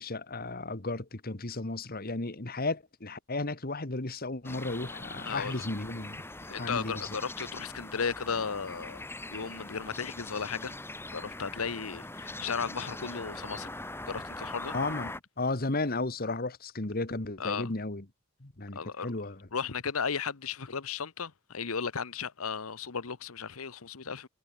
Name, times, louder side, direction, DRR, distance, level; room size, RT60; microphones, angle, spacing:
voice 1, 0.0-6.2 6.6-7.1 14.7-18.0 18.4-19.5, left 2 dB, 45° left, 1.7 m, -34 dB
sound 1, 4.4-15.2, left 2 dB, 10° left, 2.6 m, -42 dB
voice 2, 5.3-5.6 6.4-9.0 9.3-10.8 11.1-13.7 14.1-14.7 17.4-17.7 18.7-19.1 19.5-24.3, left 6 dB, 85° left, 1.0 m, -35 dB
head